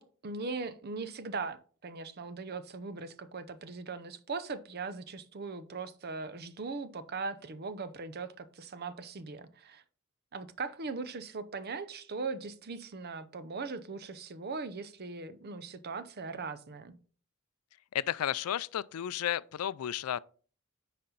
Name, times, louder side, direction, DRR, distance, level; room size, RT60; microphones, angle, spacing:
voice 1, 0.0-9.8 10.3-16.9, right 4 dB, 45° right, 0.7 m, -39 dB
voice 2, 17.9-20.2, left 10 dB, 85° left, 0.4 m, -33 dB
9.7 x 4.2 x 3.9 m
head